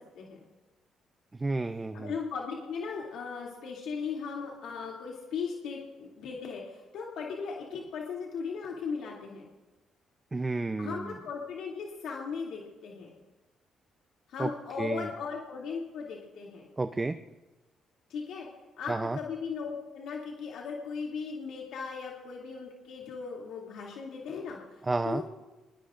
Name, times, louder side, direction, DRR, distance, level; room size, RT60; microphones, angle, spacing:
voice 1, 1.3-2.1 10.3-11.1 14.4-14.5 14.8-15.1 16.8-17.2 18.9-19.2 24.8-25.2, right 3 dB, 20° right, 8 dB, 0.7 m, -31 dB
voice 2, 1.9-9.4 10.8-13.2 14.3-16.7 18.1-18.5 18.8-24.6 25.0-25.2, left 5 dB, 80° left, -3 dB, 2.7 m, -37 dB
24.0 x 22.5 x 2.6 m, 1.2 s
cardioid pair, 90°, 0 cm